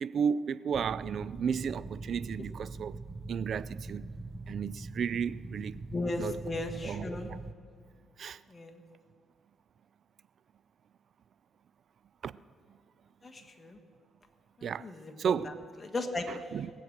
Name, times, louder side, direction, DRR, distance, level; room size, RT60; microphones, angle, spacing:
voice 1, 0.0-3.0 3.3-4.1 4.5-5.8 6.2-6.4 6.8-7.4 8.2-8.4 12.2-12.3 14.6-14.9 15.2-15.6 16.3-16.7, right 7 dB, 60° right, 0.4 m, -33 dB
sound 1, 0.7-7.5, right 3 dB, 25° right, 0.8 m, -42 dB
voice 2, 5.9-7.3 8.5-8.8 13.2-13.8 14.8-15.5 15.8-16.2, left 2 dB, 25° left, 1.5 m, -36 dB
19.0 x 7.8 x 6.6 m
cardioid pair, 90°, 0 cm